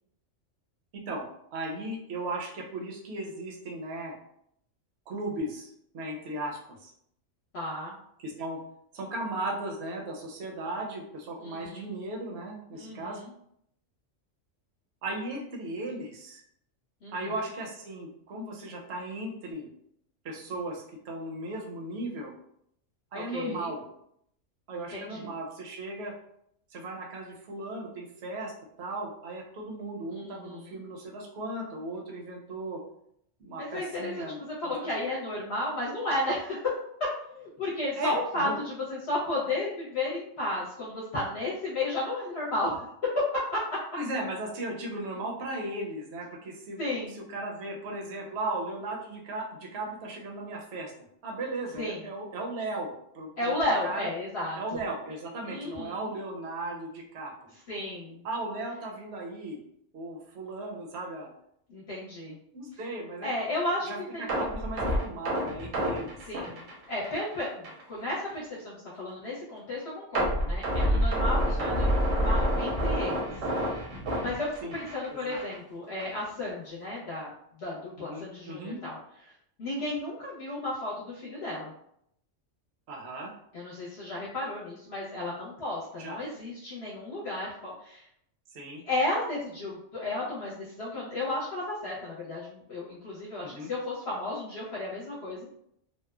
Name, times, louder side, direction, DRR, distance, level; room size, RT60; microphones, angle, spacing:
voice 1, 0.9-1.2 1.5-4.1 5.1-6.9 8.2-8.6 8.9-13.2 15.0-16.4 17.1-19.7 20.2-22.3 23.1-23.8 24.7-26.1 26.7-28.5 28.8-32.8 33.4-34.7 38.0-38.5 44.0-46.8 47.1-50.9 51.2-53.5 53.8-54.1 54.6-57.3 58.2-59.6 59.9-61.3 62.5-63.3 63.9-66.2 70.8-71.0 71.5-71.7 74.6-74.8 75.1-75.4 78.0-78.8 82.9-83.3 86.0-86.2 88.5-88.8 93.4-93.7, right 2 dB, 65° right, 0 dB, 0.8 m, -36 dB
voice 2, 7.5-7.9 11.4-11.9 12.7-13.3 17.0-17.3 23.1-23.7 24.8-25.3 30.1-30.8 33.6-36.7 37.2-42.8 43.5-43.6 46.8-47.2 51.8-52.0 53.4-54.8 55.5-56.1 57.7-58.2 61.7-62.4 63.2-64.4 66.3-73.3 73.7-73.8 74.2-77.3 77.6-79.0 79.6-81.7 83.5-88.0 88.8-95.4, left 2 dB, 60° left, -7 dB, 0.9 m, -33 dB
sound 1, 64.3-67.3 67.6-67.8 68.3-68.4 70.1-75.1 75.3-75.6 76.0-76.1, equal, 85° right, 1.1 m, -28 dB
2.9 x 2.0 x 2.3 m, 0.72 s
omnidirectional pair, 1.3 m